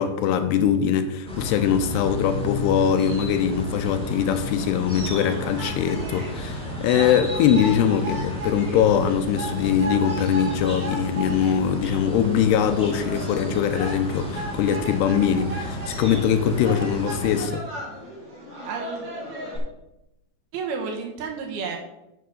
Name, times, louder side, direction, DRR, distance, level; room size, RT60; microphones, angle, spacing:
voice 1, 0.0-17.7, left 8 dB, 80° left, 8 dB, 2.7 m, -22 dB
sound 1, 1.3-17.5, equal, 5° left, 0.7 m, -33 dB
sound 2, 5.6-19.6, equal, 35° right, 3.5 m, -36 dB
voice 2, 18.6-19.1 20.5-21.8, right 5 dB, 70° right, 2 dB, 3.1 m, -31 dB
9.2 x 6.7 x 6.5 m, 0.91 s
omnidirectional pair, 5.0 m